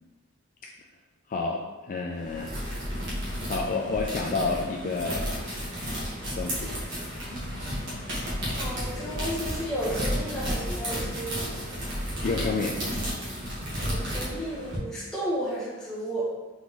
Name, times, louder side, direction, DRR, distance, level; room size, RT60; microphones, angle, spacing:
voice 1, 1.3-2.5 3.5-5.3 6.4-6.8 12.2-12.8, left 3 dB, 35° left, -1 dB, 0.3 m, -29 dB
sound 1, 2.1-14.8, equal, 55° right, 1.4 m, -32 dB
voice 2, 8.5-11.6 13.9-16.3, right 1 dB, 5° left, -8 dB, 1.2 m, -33 dB
4.0 x 3.6 x 3.1 m, 1.2 s
head